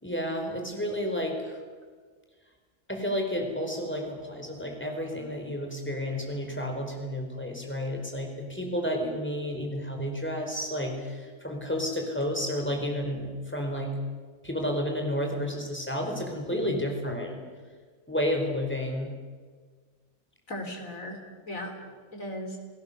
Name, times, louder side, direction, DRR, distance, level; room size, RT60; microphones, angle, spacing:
voice 1, 0.0-1.6 2.9-14.0 14.4-17.4 18.1-19.1, equal, 10° left, 2 dB, 4.3 m, -31 dB
voice 2, 20.5-21.2 21.4-22.6, left 1 dB, 65° left, 2 dB, 4.4 m, -37 dB
29.0 x 17.5 x 7.0 m, 1.5 s
omnidirectional pair, 1.5 m